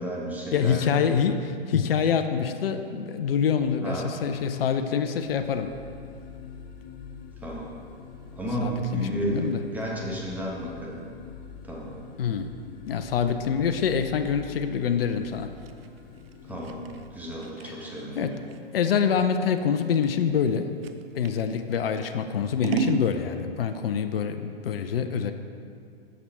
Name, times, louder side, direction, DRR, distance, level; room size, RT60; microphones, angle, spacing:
voice 1, 0.0-1.0 3.8-4.2 7.4-7.7 8.3-11.0 11.6-12.0 16.4-16.8 17.1-18.3, right 1 dB, 5° right, -4 dB, 1.2 m, -32 dB
voice 2, 0.5-5.7 8.6-9.6 12.2-12.5 12.9-15.5 17.6-17.8 18.2-18.3 18.7-20.7 21.1-25.3, left 7 dB, 70° left, 8 dB, 0.6 m, -26 dB
sound 1, 5.2-17.1, left 6 dB, 25° left, 0.6 m, -45 dB
Scissors, 15.2-21.4 21.9-23.1, right 6 dB, 70° right, 0.5 m, -34 dB
6.6 x 6.1 x 4.4 m, 2.3 s
figure-of-eight pair, 115°, 30 cm